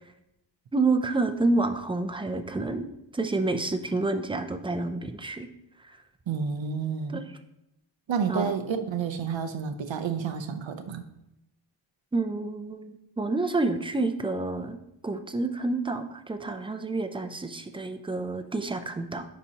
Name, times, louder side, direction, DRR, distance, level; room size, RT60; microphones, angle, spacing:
voice 1, 0.7-2.9 3.1-5.5 7.1-7.2 8.3-8.6 12.1-14.8 15.0-19.3, right 3 dB, 10° right, 8 dB, 0.4 m, -28 dB
voice 2, 6.3-7.2 8.1-11.0, right 6 dB, 85° right, 8 dB, 0.7 m, -30 dB
9.9 x 4.1 x 2.8 m, 0.86 s
wide cardioid pair, 115°, 45 cm